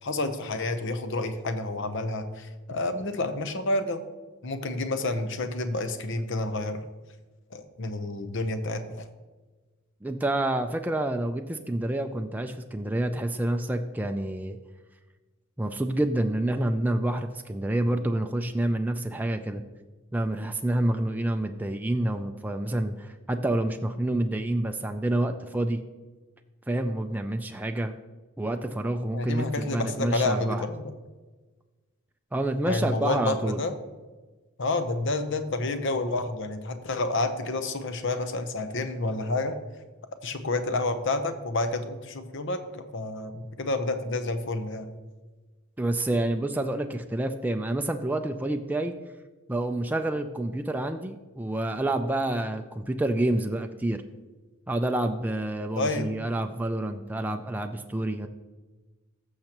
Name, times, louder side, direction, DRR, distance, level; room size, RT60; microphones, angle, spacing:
voice 1, 0.0-4.0 4.4-6.8 7.5-9.1 29.1-30.8 32.6-33.7 34.6-39.6 40.2-44.9 55.7-56.1, left 2 dB, 60° left, 9 dB, 0.8 m, -29 dB
voice 2, 10.0-14.6 15.6-19.6 20.1-25.8 26.7-27.9 28.4-30.6 32.3-33.6 45.8-48.9 49.5-54.0 54.7-58.3, right 1 dB, 10° right, 5 dB, 0.3 m, -28 dB
14.5 x 6.5 x 3.0 m, 1.3 s
head